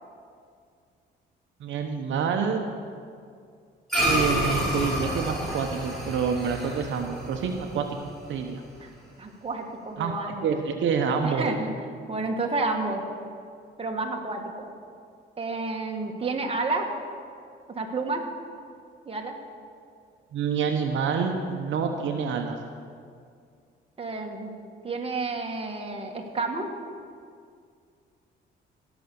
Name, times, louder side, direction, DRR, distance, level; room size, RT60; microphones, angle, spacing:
voice 1, 1.6-2.6 4.0-8.6 10.0-10.2 10.4-11.5 20.3-22.6, right 6 dB, 75° right, 4 dB, 0.9 m, -27 dB
sound 1, 3.9-8.5, equal, ahead, 3.9 m, -29 dB
voice 2, 9.2-10.6 11.2-11.7 12.1-13.0 13.8-14.7 15.4-16.9 17.7-18.2 19.0-19.3 24.0-24.5 24.8-26.7, right 3 dB, 30° right, 2 dB, 1.6 m, -30 dB
16.0 x 6.1 x 6.9 m, 2.2 s
cardioid pair, 90°, 20 cm